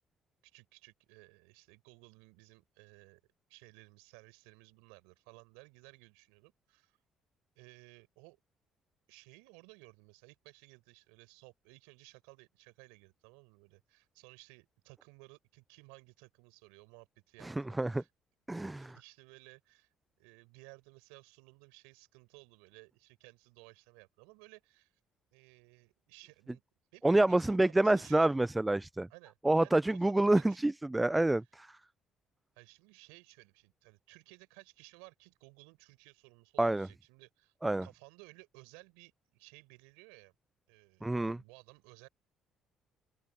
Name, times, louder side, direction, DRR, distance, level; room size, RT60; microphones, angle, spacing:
voice 1, 0.4-3.2 3.5-7.0 7.5-8.4 9.1-18.1 18.7-19.9 20.2-24.9 25.3-26.6 26.9-28.4 29.1-30.6 32.5-37.5 37.8-40.3 40.7-42.1, right 30 dB, 85° right, 4.8 m, -58 dB
voice 2, 17.4-18.0 18.5-18.9 27.0-29.1 29.4-31.8 36.6-36.9 37.6-37.9 41.0-41.4, right 2 dB, 15° right, 0.3 m, -28 dB
hypercardioid pair, 60°, 0 cm